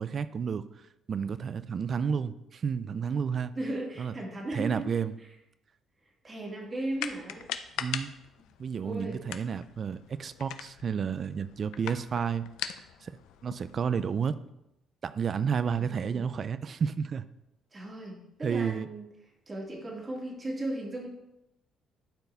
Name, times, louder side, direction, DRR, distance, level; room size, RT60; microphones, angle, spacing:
voice 1, 0.0-3.5 4.0-4.1 4.5-5.1 7.8-8.1 8.6-12.5 13.0-13.2 13.4-14.4 15.0-17.3 18.4-18.9, right 6 dB, 45° right, 14 dB, 0.4 m, -31 dB
voice 2, 3.6-4.8 6.2-7.5 8.8-9.2 15.8-16.3 17.7-19.1 19.5-21.1, right 1 dB, 30° right, -2 dB, 2.3 m, -36 dB
sound 1, 6.9-14.3, left 10 dB, 90° left, 0.5 m, -41 dB
11.5 x 4.5 x 3.4 m, 0.87 s
cardioid pair, 100°, 0 cm